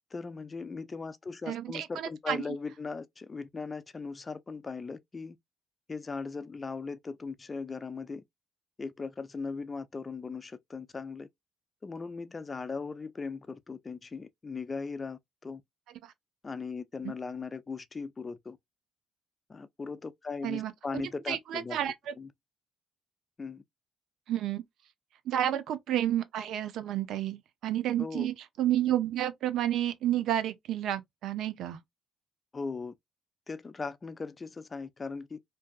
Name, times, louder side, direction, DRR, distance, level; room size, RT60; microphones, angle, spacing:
voice 1, 0.1-5.4 5.9-8.2 8.8-11.3 11.8-15.6 16.4-18.6 19.5-21.8 22.2-22.3 23.4-23.6 28.0-28.3 32.5-32.9 33.5-35.4, left 4 dB, 35° left, 0.4 m, -38 dB
voice 2, 1.5-2.4 16.0-16.1 17.0-17.1 20.4-21.0 21.3-22.1 24.3-24.6 25.3-31.8, right 11 dB, 75° right, 0.5 m, -31 dB
2.6 x 2.3 x 2.3 m
supercardioid pair, 60°, 0 cm